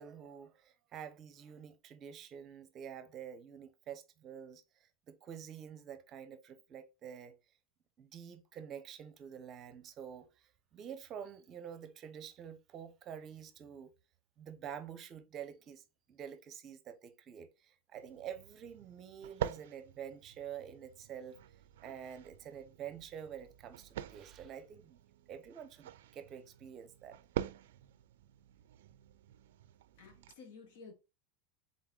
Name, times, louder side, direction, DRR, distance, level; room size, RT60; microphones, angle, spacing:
voice 1, 0.0-7.4 8.0-13.9 14.4-21.4 21.8-25.0 25.3-27.2, right 8 dB, 35° right, 0.7 m, -48 dB
sound 1, 17.9-30.3, right 12 dB, 85° right, 0.3 m, -46 dB
voice 2, 30.0-30.9, left 4 dB, 75° left, 1.5 m, -53 dB
3.8 x 3.6 x 3.7 m
supercardioid pair, 130°, 0 cm